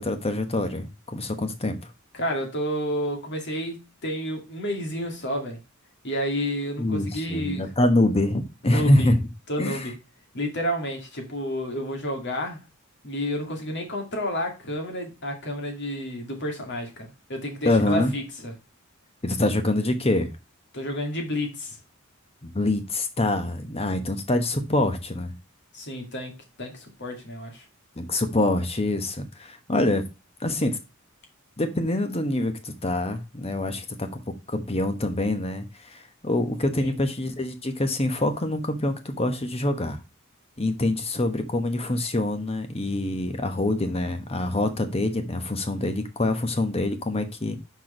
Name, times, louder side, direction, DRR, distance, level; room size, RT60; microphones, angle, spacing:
voice 1, 0.0-1.9 6.8-9.2 9.6-9.9 17.6-18.1 19.2-20.3 22.4-25.3 28.0-30.0 30.4-30.8 31.6-34.2 34.5-40.0 40.6-47.6, left 1 dB, 30° left, 1.1 m, -25 dB
voice 2, 2.1-5.6 6.0-7.7 8.6-9.1 9.5-9.9 10.3-12.6 13.0-18.5 20.7-21.8 25.7-27.6 36.8-36.9, equal, 55° left, 2.2 m, -30 dB
6.1 x 4.7 x 4.9 m
head